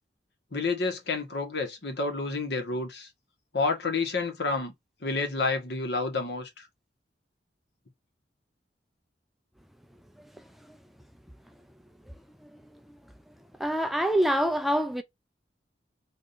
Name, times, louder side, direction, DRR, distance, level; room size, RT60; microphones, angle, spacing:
voice 1, 0.5-3.1 3.5-4.7 5.0-6.6, left 3 dB, 70° left, 1.2 m, -29 dB
voice 2, 13.6-15.0, equal, ahead, 0.3 m, -26 dB
3.6 x 2.4 x 2.6 m
head